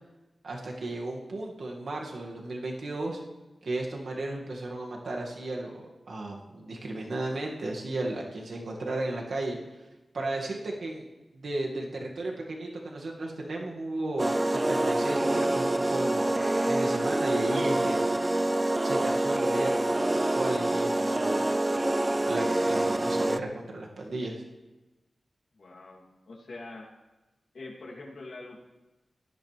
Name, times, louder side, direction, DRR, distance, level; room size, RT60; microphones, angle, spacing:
voice 1, 0.4-3.2 3.6-9.6 10.1-11.1 11.3-16.4 16.7-18.0 18.8-21.4 22.3-24.4, right 2 dB, 80° right, -1 dB, 2.1 m, -34 dB
sound 1, 14.2-23.4, right 1 dB, 25° right, 0.5 m, -26 dB
voice 2, 25.5-26.9 27.5-28.6, left 2 dB, 75° left, -3 dB, 2.9 m, -44 dB
17.5 x 12.0 x 3.4 m, 1.1 s
wide cardioid pair, 75°, 0 cm